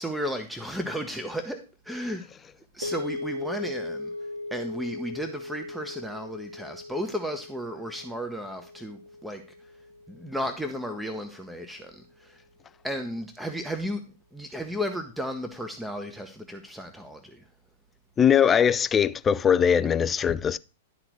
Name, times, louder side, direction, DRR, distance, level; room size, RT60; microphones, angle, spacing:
voice 1, 0.0-2.2 2.7-4.1 4.5-9.4 10.1-12.4 12.8-14.0 14.3-17.4, equal, 5° right, 1.0 m, -34 dB
sound 1, 2.8-11.1, left 2 dB, 90° right, 1.9 m, -38 dB
voice 2, 18.2-20.6, left 8 dB, 20° left, 0.4 m, -21 dB
12.0 x 4.0 x 6.2 m
hypercardioid pair, 110°, 0 cm